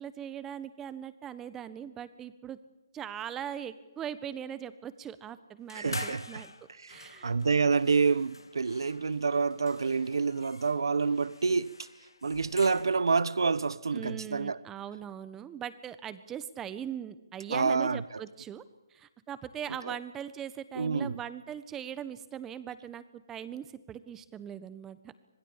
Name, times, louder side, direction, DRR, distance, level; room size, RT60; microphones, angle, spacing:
voice 1, 0.0-2.6 2.9-6.5 6.9-7.3 13.9-18.6 18.9-25.1, right 9 dB, 15° right, 1.3 m, -40 dB
sound 1, 5.7-13.2, left 3 dB, 90° left, 2.8 m, -47 dB
voice 2, 5.7-6.4 6.8-6.9 7.2-11.8 12.2-14.6 17.5-18.2 19.8-20.0 20.8-21.2, right 4 dB, 75° right, 1.1 m, -28 dB
26.0 x 21.0 x 7.5 m
figure-of-eight pair, 150°, 2 cm